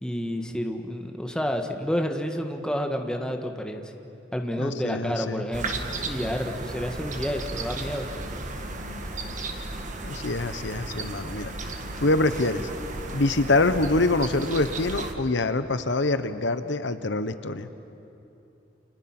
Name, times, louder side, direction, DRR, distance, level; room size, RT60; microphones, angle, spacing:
voice 1, 0.0-3.9 4.3-5.7 6.1-8.1, equal, 5° left, 4 dB, 1.6 m, -29 dB
voice 2, 4.6-5.4 10.0-11.5 12.0-12.7 13.1-17.7, left 2 dB, 70° left, 11 dB, 1.0 m, -25 dB
sound 1, 5.5-15.1, right 2 dB, 45° right, 1.8 m, -34 dB
30.0 x 28.5 x 6.1 m, 2.8 s
head